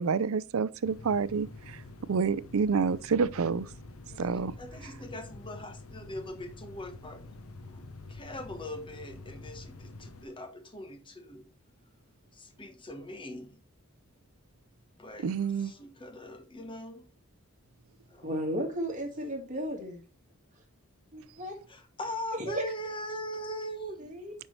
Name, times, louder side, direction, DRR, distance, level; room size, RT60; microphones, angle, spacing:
voice 1, 0.0-1.8 2.1-3.7 4.2-4.5 15.2-15.7, right 5 dB, 75° right, 0.5 m, -28 dB
sound 1, 0.8-10.3, left 2 dB, 85° left, 0.9 m, -47 dB
voice 2, 4.1-7.8 8.1-11.4 12.3-13.6 15.0-17.1 18.1-18.6 21.7-24.1, equal, 25° left, 1.1 m, -41 dB
voice 3, 18.2-20.0 21.1-21.5 22.4-22.6 24.0-24.3, equal, 35° right, 1.8 m, -34 dB
8.8 x 5.5 x 3.2 m
head